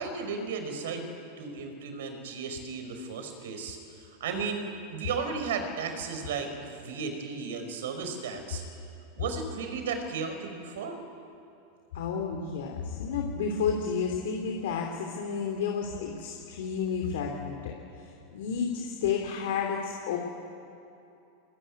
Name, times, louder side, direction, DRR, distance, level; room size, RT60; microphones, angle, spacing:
voice 1, 0.0-3.8 4.2-8.6 9.2-11.0, right 5 dB, 80° right, 6 dB, 4.7 m, -34 dB
voice 2, 11.9-20.2, left 6 dB, 80° left, 2 dB, 2.9 m, -31 dB
22.0 x 20.5 x 9.6 m, 2.7 s
supercardioid pair, 140°, 0 cm